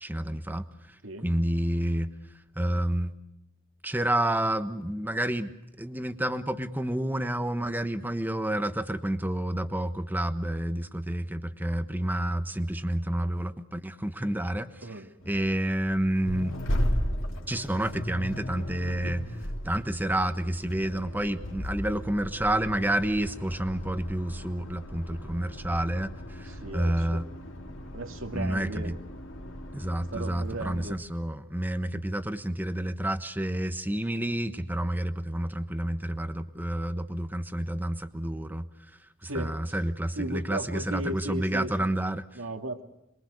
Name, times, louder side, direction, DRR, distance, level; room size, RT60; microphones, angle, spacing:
voice 1, 0.0-1.0 1.2-2.1 2.6-3.1 3.8-5.5 5.8-14.9 15.2-16.5 17.5-19.2 19.6-27.2 28.3-28.9 29.7-38.7 39.2-42.2, right 1 dB, 10° right, 10 dB, 1.2 m, -29 dB
Accelerating revving vroom, 15.2-30.9, equal, 70° left, 3.0 m, -36 dB
voice 2, 26.5-27.2 27.9-28.9 30.1-31.0 39.3-39.6 40.2-41.9 42.4-42.8, right 1 dB, 75° right, 6 dB, 2.2 m, -36 dB
27.0 x 22.5 x 6.5 m, 0.86 s
head